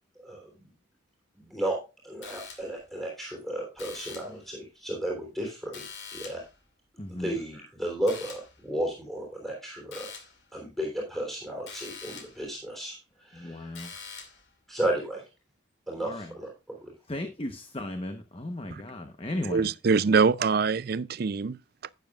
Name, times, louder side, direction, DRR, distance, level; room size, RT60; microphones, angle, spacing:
voice 1, 0.2-0.7 1.3-5.8 6.1-6.4 7.1-10.1 10.5-13.8 14.7-15.2 15.9-16.9, right 1 dB, ahead, 3.4 m, -34 dB
sound 1, 2.2-2.9 3.8-4.4 5.7-6.6 8.1-8.6 9.9-10.4 11.7-12.5 13.7-14.5, left 5 dB, 60° left, 2.5 m, -44 dB
voice 2, 7.0-7.3 13.4-13.9 16.0-16.3 17.1-19.7, left 1 dB, 25° left, 0.9 m, -35 dB
voice 3, 19.5-21.9, right 5 dB, 50° right, 0.4 m, -24 dB
12.0 x 9.3 x 2.4 m
head